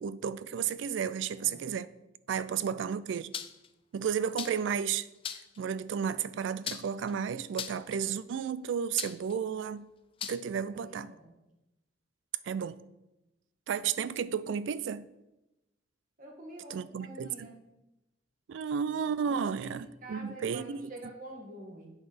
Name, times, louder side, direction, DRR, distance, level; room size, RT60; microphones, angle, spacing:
voice 1, 0.0-1.9 2.3-3.3 3.9-5.1 5.6-9.9 10.2-11.1 12.4-12.8 13.7-15.1 16.7-17.5 18.5-20.8, right 7 dB, 70° right, 0.3 m, -33 dB
sound 1, 3.3-3.7 4.4-4.7 5.2-5.6 6.6-7.1 7.6-7.9 9.0-9.3 10.2-10.4, left 8 dB, 25° left, 0.3 m, -38 dB
voice 2, 10.7-11.4 16.2-17.6 19.3-21.9, right 1 dB, 45° right, 1.5 m, -48 dB
8.4 x 3.9 x 5.1 m
head